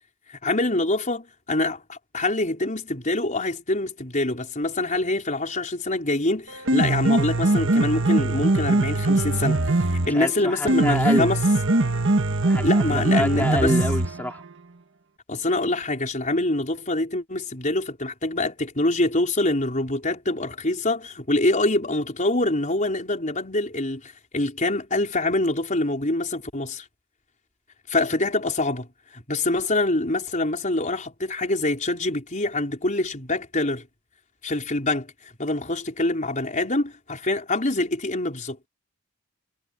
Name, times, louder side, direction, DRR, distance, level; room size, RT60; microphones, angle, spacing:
voice 1, 0.4-9.6 9.9-11.4 12.6-13.8 15.3-26.8 27.9-28.9 29.1-33.9 34.4-38.6, left 2 dB, 35° left, 5.0 m, -25 dB
Piano, 6.5-14.5, right 2 dB, 60° right, 1.6 m, -22 dB
voice 2, 10.1-11.3 12.4-14.4, left 1 dB, 10° left, 4.0 m, -27 dB
head